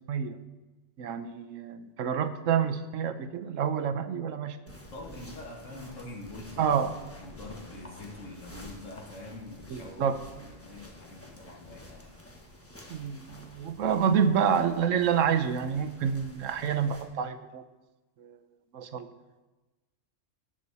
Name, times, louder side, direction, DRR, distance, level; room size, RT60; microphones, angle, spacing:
voice 1, 1.0-4.6 6.6-6.9 9.7-10.2 12.9-17.6 18.2-18.4 18.7-19.1, right 7 dB, 90° right, 9 dB, 1.1 m, -28 dB
sound 1, 4.7-17.0, left 1 dB, 10° left, 1.3 m, -50 dB
voice 2, 4.9-12.1, left 2 dB, 80° left, 0 dB, 2.1 m, -45 dB
17.5 x 6.4 x 4.1 m, 1.1 s
omnidirectional pair, 1.3 m